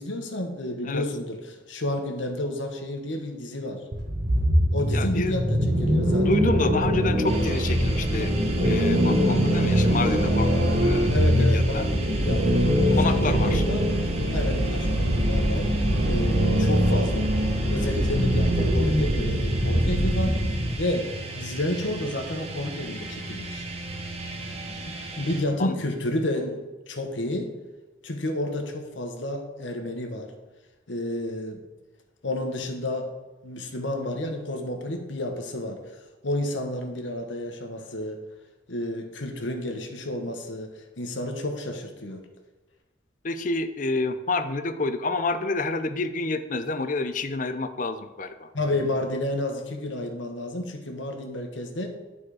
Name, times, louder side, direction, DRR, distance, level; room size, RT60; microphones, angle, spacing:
voice 1, 0.0-3.8 4.7-6.3 11.1-12.5 12.8-13.9 14.3-15.8 16.0-17.3 17.6-20.4 20.7-21.1 21.4-23.7 24.9-27.5 28.0-30.3 30.9-31.6 32.2-33.1 33.4-35.8 36.2-38.2 38.7-42.2 48.5-51.9, left 1 dB, 90° left, 4 dB, 1.2 m, -31 dB
sound 1, 3.9-20.8, equal, 60° right, 1.3 m, -22 dB
voice 2, 4.9-5.3 6.3-11.8 12.9-13.6 24.7-24.8 25.6-25.7 43.2-48.5, left 3 dB, 45° left, 9 dB, 0.6 m, -29 dB
sound 2, 7.2-25.4, right 2 dB, 35° right, 1.1 m, -36 dB
11.0 x 4.2 x 4.9 m, 1.2 s
head